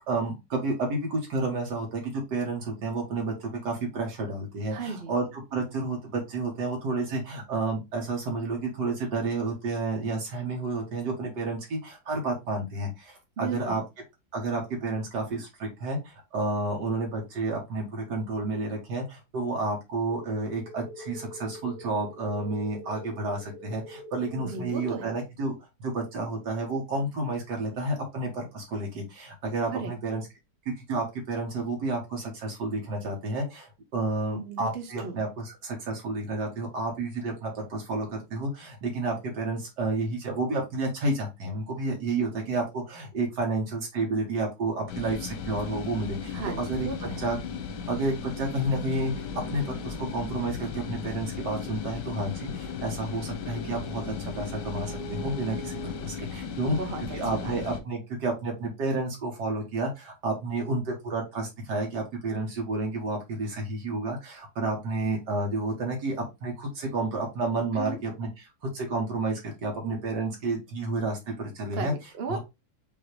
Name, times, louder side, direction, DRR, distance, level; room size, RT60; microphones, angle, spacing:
voice 1, 0.1-13.8 14.3-25.6 25.8-30.3 30.9-46.9 47.2-47.4 47.9-56.8 57.1-71.9 72.3-72.4, right 2 dB, 80° right, 0 dB, 1.9 m, -30 dB
voice 2, 4.7-5.1 13.4-13.8 24.4-25.1 29.7-29.9 34.3-35.2 46.3-47.3 56.6-57.6 67.7-68.0 71.7-72.4, right 4 dB, 45° right, 4 dB, 1.0 m, -36 dB
sound 1, 20.1-25.1, equal, 40° left, 1.3 m, -44 dB
sound 2, 44.9-57.8, left 5 dB, 85° left, 1.5 m, -36 dB
5.5 x 3.0 x 3.2 m, 0.23 s
omnidirectional pair, 1.8 m